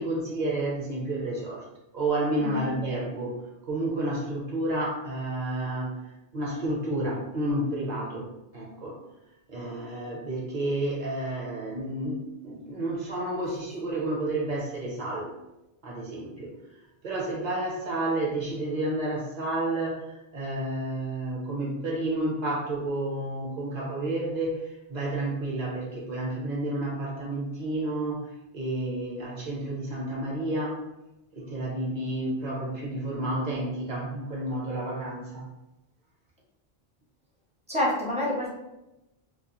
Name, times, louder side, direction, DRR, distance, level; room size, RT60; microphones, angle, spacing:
voice 1, 0.0-1.7 1.9-9.0 9.5-15.3 15.8-16.5 17.0-30.8 31.3-35.5, right 1 dB, 50° right, -2 dB, 0.7 m, -31 dB
voice 2, 2.4-2.7 37.7-38.5, left 1 dB, 10° right, -5 dB, 0.4 m, -27 dB
2.3 x 2.3 x 2.9 m, 0.94 s
omnidirectional pair, 1.1 m